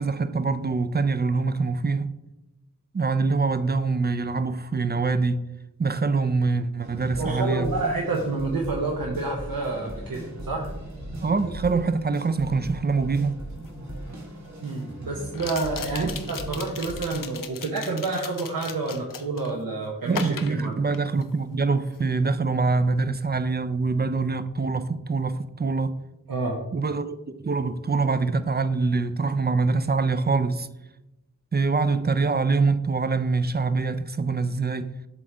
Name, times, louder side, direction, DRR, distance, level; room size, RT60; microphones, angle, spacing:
voice 1, 0.0-2.1 2.9-5.4 5.8-7.7 11.2-13.3 15.9-16.2 20.1-26.0 26.7-30.7 31.5-34.9, right 4 dB, 30° right, 0.4 m, -24 dB
sound 1, 6.8-17.3, right 1 dB, 55° right, 1.5 m, -38 dB
voice 2, 7.2-10.7 14.6-20.8 26.3-26.6, right 3 dB, 80° right, 0.8 m, -29 dB
sound 2, 13.6-13.7 15.3-19.5 20.1-21.4 21.7-22.0, left 6 dB, 70° left, 0.6 m, -37 dB
7.5 x 3.3 x 3.7 m
wide cardioid pair, 45°, 34 cm